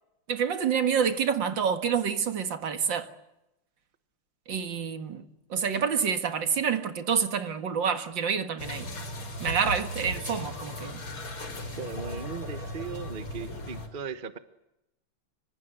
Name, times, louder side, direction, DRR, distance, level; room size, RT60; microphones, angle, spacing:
voice 1, 0.3-3.1 4.5-5.2 5.5-8.9 9.4-11.0, right 7 dB, 60° right, 2.3 m, -28 dB
sound 1, 8.6-13.9, left 1 dB, 85° left, 5.7 m, -37 dB
voice 2, 11.7-14.4, right 5 dB, 30° right, 1.1 m, -38 dB
26.0 x 25.0 x 7.8 m
omnidirectional pair, 2.3 m